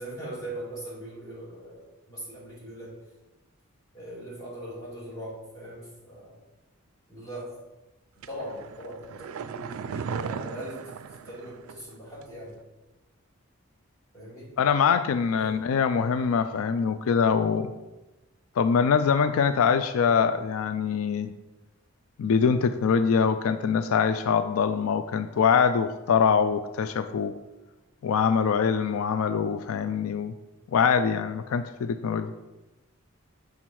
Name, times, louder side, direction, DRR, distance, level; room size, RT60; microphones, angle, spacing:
voice 1, 0.0-2.9 3.9-6.4 7.1-7.5 8.3-11.0 11.3-12.5 14.1-14.5 15.4-15.6, right 1 dB, 15° left, -6 dB, 2.1 m, -40 dB
sound 1, 8.2-11.9 12.2-12.3, right 6 dB, 80° right, 0.3 m, -37 dB
voice 2, 14.6-17.7 18.6-21.3 22.2-27.3 28.0-30.3 30.7-32.3, left 6 dB, 80° left, 10 dB, 0.3 m, -24 dB
6.2 x 3.6 x 6.0 m, 1.1 s
head